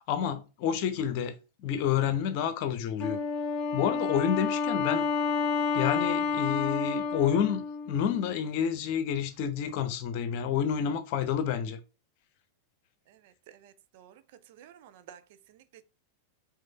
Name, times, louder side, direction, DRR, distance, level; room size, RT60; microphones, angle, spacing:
voice 1, 0.0-1.4 1.6-3.2 3.7-5.1 5.7-11.8, left 8 dB, 45° left, 0.9 m, -29 dB
Wind instrument woodwind instrument, 3.0-8.4, left 5 dB, 25° left, 1.1 m, -30 dB
voice 2, 13.1-14.2 14.5-15.2 15.5-15.8, right 10 dB, 50° right, 0.6 m, -53 dB
5.3 x 3.6 x 5.4 m
figure-of-eight pair, 90°, 0 cm